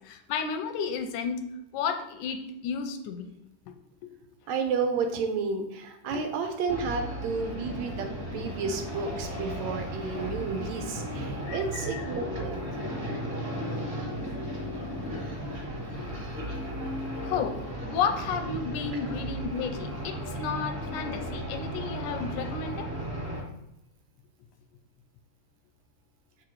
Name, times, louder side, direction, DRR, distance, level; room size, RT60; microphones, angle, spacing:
voice 1, 0.0-1.4 1.7-3.3 3.7-3.8 4.0-4.1 6.1-6.2 11.5-12.2 16.0-16.1 17.2-22.9, left 6 dB, 85° left, 7 dB, 2.1 m, -32 dB
voice 2, 4.5-8.1 8.3-12.6, right 5 dB, 75° right, 5 dB, 1.8 m, -31 dB
sound 1, 6.7-23.4, equal, 30° right, 2.1 m, -35 dB
7.2 x 5.0 x 4.6 m, 0.87 s
omnidirectional pair, 3.6 m